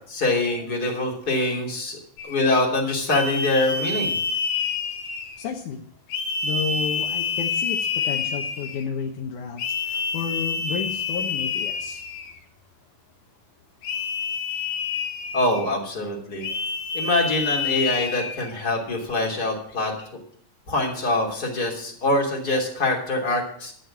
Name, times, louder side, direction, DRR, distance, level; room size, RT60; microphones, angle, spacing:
voice 1, 0.1-2.0 2.2-4.1 15.3-16.5 16.9-20.1 20.7-23.7, left 2 dB, 30° left, 0 dB, 3.4 m, -24 dB
sound 1, 2.2-2.4 3.1-5.5 6.1-8.8 9.6-12.4 13.8-15.7 16.4-18.5, left 5 dB, 90° left, 3.1 m, -28 dB
voice 2, 5.4-5.8 6.4-12.0, left 7 dB, 70° left, 1 dB, 2.4 m, -31 dB
12.0 x 7.9 x 7.6 m, 0.63 s
omnidirectional pair, 3.9 m